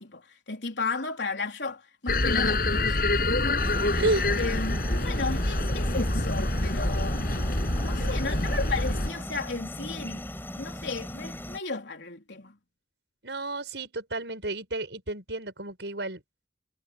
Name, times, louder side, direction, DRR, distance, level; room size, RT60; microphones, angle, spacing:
voice 1, 0.0-2.6 3.2-3.3 3.9-4.0 4.4-7.3 7.8-10.3 10.5-12.6, left 3 dB, 85° left, 3.7 m, -34 dB
sound 1, 2.1-9.1, left 2 dB, 55° left, 7.1 m, -26 dB
sound 2, 3.6-11.6, left 1 dB, 10° left, 6.3 m, -38 dB
voice 2, 13.2-16.2, right 2 dB, 80° right, 5.9 m, -31 dB
head